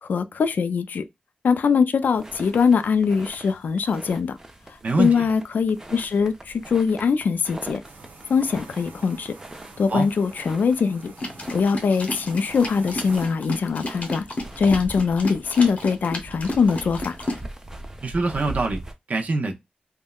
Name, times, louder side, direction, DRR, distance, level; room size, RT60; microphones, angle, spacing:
voice 1, 0.0-1.0 1.4-4.4 4.7-7.8 8.3-9.3 9.8-11.1 11.5-14.3 14.6-17.2, left 5 dB, 75° left, 0.3 m, -22 dB
sound 1, 2.0-18.9, right 2 dB, 15° right, 0.5 m, -41 dB
voice 2, 4.8-5.2 9.9-10.1 18.0-19.5, right 3 dB, 55° right, 0.7 m, -24 dB
sound 2, 7.8-13.2, right 3 dB, 85° right, 0.8 m, -46 dB
sound 3, 11.2-17.4, left 1 dB, 50° left, 0.8 m, -32 dB
3.4 x 2.1 x 2.2 m
wide cardioid pair, 100°, 3 cm